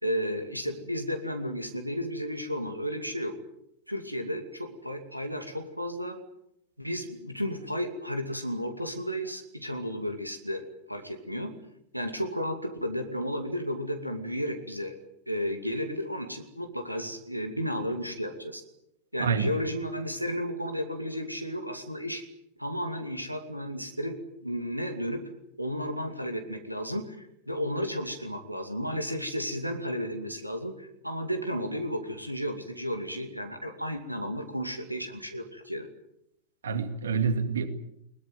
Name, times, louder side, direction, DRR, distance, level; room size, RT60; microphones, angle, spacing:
voice 1, 0.0-3.3 3.9-6.2 6.8-11.5 11.9-15.0 15.3-18.6 19.1-22.2 22.6-25.2 25.6-35.9, equal, 90° right, 6 dB, 2.5 m, -33 dB
voice 2, 19.2-19.6 36.6-37.7, right 5 dB, 65° right, 10 dB, 2.3 m, -27 dB
22.0 x 20.0 x 9.4 m, 0.78 s
figure-of-eight pair, 90°, 0 cm